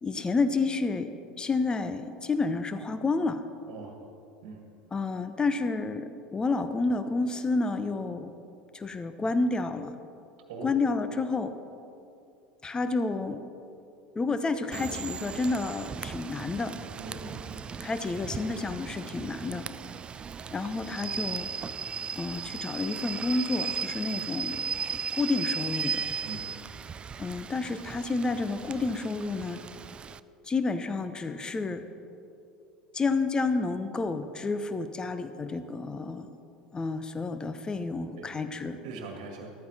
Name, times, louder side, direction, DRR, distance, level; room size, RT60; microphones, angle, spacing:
voice 1, 0.0-3.4 4.9-8.3 8.7-9.9 10.6-11.6 12.6-13.4 14.1-16.8 17.8-19.7 20.5-21.5 22.2-24.6 25.1-26.0 27.2-29.6 30.5-31.8 32.9-36.3 36.7-38.8, left 3 dB, 20° left, 11 dB, 0.8 m, -30 dB
Rain / Train, 14.7-30.2, right 6 dB, 25° right, 0.3 m, -36 dB
voice 2, 17.0-17.6 26.2-26.4 38.2-38.3 38.8-39.5, right 4 dB, 55° right, 3 dB, 1.7 m, -41 dB
14.0 x 13.0 x 4.2 m, 2.7 s
figure-of-eight pair, 75°, 4 cm